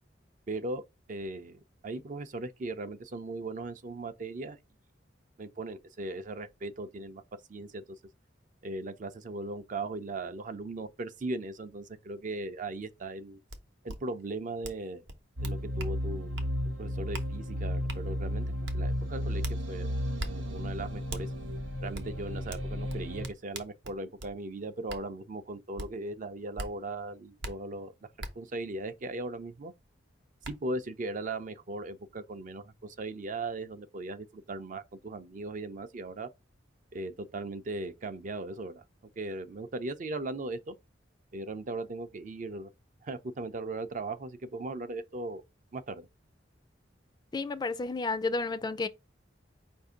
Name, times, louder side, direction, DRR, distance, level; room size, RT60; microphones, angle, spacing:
voice 1, 0.5-0.8 1.1-4.6 5.4-7.2 7.5-7.8 8.6-13.4 13.8-15.1 15.4-16.4 16.8-19.4 19.7-19.9 20.3-21.3 21.8-28.1 28.4-29.7 30.5-36.3 36.9-38.8 39.2-40.7 41.3-42.7 43.0-45.4 45.7-46.1, right 2 dB, 45° right, 0.5 m, -38 dB
sound 1, 13.5-13.6 13.9-14.0 14.6-14.8 15.1-15.9 16.4-16.5 17.1-17.3 17.9-18.0 18.6-18.8 19.4-19.6 20.2-20.3 21.1-21.2 21.9-22.1 22.5-24.3 24.9-25.0 25.8-25.9 26.6-26.7 27.4-27.5 28.2-28.3 29.8-29.9 30.4-30.5, right 2 dB, 65° right, 0.8 m, -39 dB
sound 2, 15.4-23.3, equal, 90° right, 1.0 m, -34 dB
voice 2, 47.3-48.9, left 3 dB, 20° left, 0.3 m, -31 dB
4.9 x 2.6 x 3.5 m
head